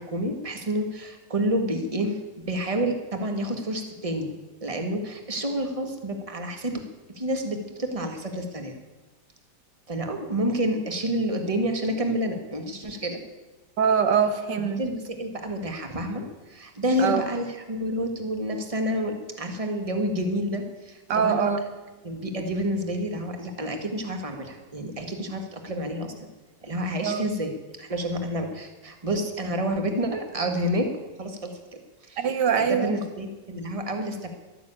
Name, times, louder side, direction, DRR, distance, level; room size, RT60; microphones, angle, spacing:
voice 1, 0.0-2.2 2.5-4.3 4.6-6.7 7.1-8.7 9.9-13.2 14.8-21.4 22.0-26.3 26.6-27.5 27.8-30.9 31.2-31.5 32.0-32.2 32.6-34.3, equal, 20° right, 5 dB, 1.6 m, -29 dB
voice 2, 13.8-14.8 17.0-17.2 21.1-21.6 27.0-27.3 32.2-32.9, right 7 dB, 85° right, 9 dB, 1.8 m, -23 dB
12.5 x 12.0 x 8.7 m, 1.2 s
omnidirectional pair, 1.8 m